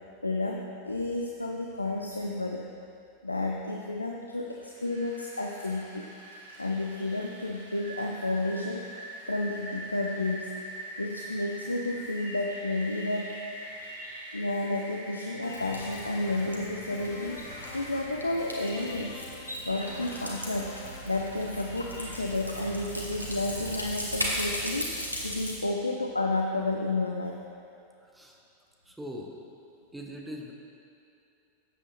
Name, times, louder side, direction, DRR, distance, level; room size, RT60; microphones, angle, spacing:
voice 1, 0.2-2.6 3.2-6.0 6.6-8.9 9.3-10.5 11.0-13.3 14.3-17.4 17.7-19.2 19.6-20.7 21.1-24.9 25.2-27.4, left 2 dB, 80° left, 1 dB, 0.5 m, -31 dB
Rain, 4.6-24.1, equal, 70° right, 2.3 m, -44 dB
sound 1, 15.4-16.6 16.9-18.1 18.4-19.6 19.9-21.1, left 7 dB, 45° left, 0.6 m, -47 dB
sound 2, 15.5-25.5, equal, 90° right, 1.3 m, -37 dB
voice 2, 28.9-29.4 29.9-30.5, equal, 5° right, 0 dB, 1.0 m, -40 dB
13.5 x 8.1 x 2.6 m, 2.7 s
figure-of-eight pair, 90°, 0 cm